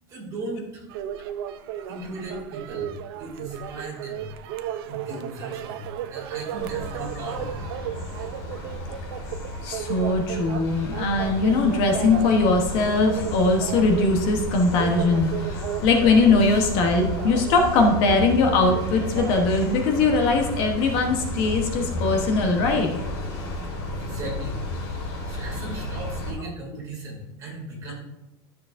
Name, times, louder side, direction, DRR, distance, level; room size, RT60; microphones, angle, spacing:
voice 1, 0.1-0.9 1.9-4.3 4.9-7.7 23.6-24.7 25.2-27.9, right 2 dB, 25° right, -3 dB, 2.5 m, -37 dB
sound 1, 0.9-19.5, right 10 dB, 75° right, 0.6 m, -35 dB
sound 2, 6.5-26.3, left 1 dB, 90° left, 3.2 m, -32 dB
voice 2, 9.6-22.9 27.9-28.0, left 3 dB, 45° left, 3 dB, 1.1 m, -21 dB
12.5 x 6.7 x 2.6 m, 0.93 s
cardioid pair, 180°, 13 cm